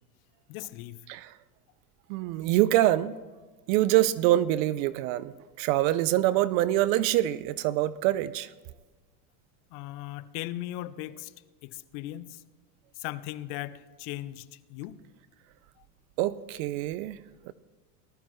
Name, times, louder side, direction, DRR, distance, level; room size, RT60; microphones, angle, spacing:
voice 1, 0.5-1.0 9.7-11.3 11.6-12.4 13.0-15.0, left 15 dB, 55° left, 0.7 m, -38 dB
voice 2, 2.1-3.2 3.7-8.5 16.2-17.2 17.5-17.6, right 14 dB, 60° right, 0.6 m, -25 dB
19.0 x 13.0 x 3.2 m
supercardioid pair, 120°, 45 cm